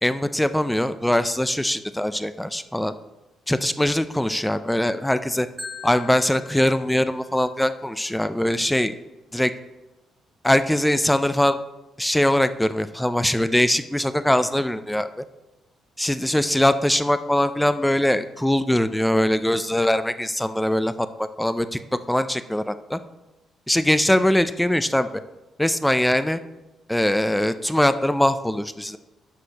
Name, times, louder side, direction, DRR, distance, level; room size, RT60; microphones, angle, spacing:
voice 1, 0.0-2.9 3.5-5.5 5.8-9.0 9.3-9.5 10.4-11.6 12.0-15.2 16.0-23.0 23.7-25.1 25.6-26.4 26.9-29.0, left 1 dB, 5° left, 12 dB, 0.4 m, -22 dB
Marimba xylophone, 5.6-7.7, left 4 dB, 15° right, 1.0 m, -41 dB
10.0 x 6.2 x 2.9 m, 1.1 s
cardioid pair, 90°, 0 cm